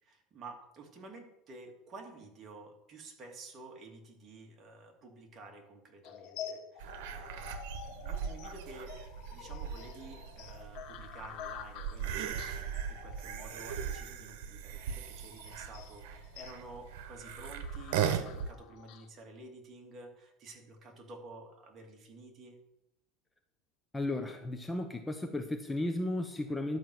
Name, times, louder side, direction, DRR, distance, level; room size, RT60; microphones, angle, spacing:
voice 1, 0.0-9.0 9.3-22.6, right 3 dB, 35° right, 2 dB, 2.4 m, -51 dB
sound 1, 6.0-19.1, left 8 dB, 60° left, 1.3 m, -49 dB
sound 2, 6.8-18.5, right 8 dB, 80° right, 1.1 m, -39 dB
voice 2, 23.9-26.8, left 1 dB, 10° left, 6 dB, 0.9 m, -34 dB
11.5 x 6.0 x 7.7 m, 0.86 s
supercardioid pair, 140°, 0 cm